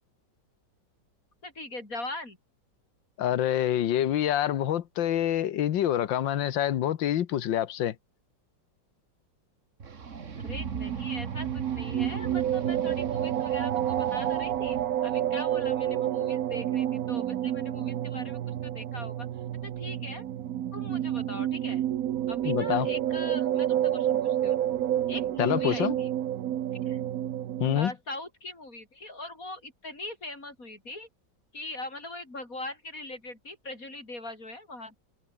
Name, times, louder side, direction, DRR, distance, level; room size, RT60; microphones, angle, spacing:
voice 1, 1.4-2.4 10.4-19.3 19.6-20.2 20.7-21.8 22.3-24.6 25.1-26.2 26.8-27.0 27.7-31.1 31.5-35.0, left 2 dB, 45° left, 6.3 m, -41 dB
voice 2, 3.2-8.0 22.5-22.9 25.4-26.0 27.6-27.9, left 11 dB, 80° left, 1.8 m, -26 dB
sound 1, 9.8-14.8, right 5 dB, 40° right, 1.9 m, -38 dB
sound 2, 10.4-27.8, right 11 dB, 60° right, 1.1 m, -29 dB
omnidirectional pair, 2.0 m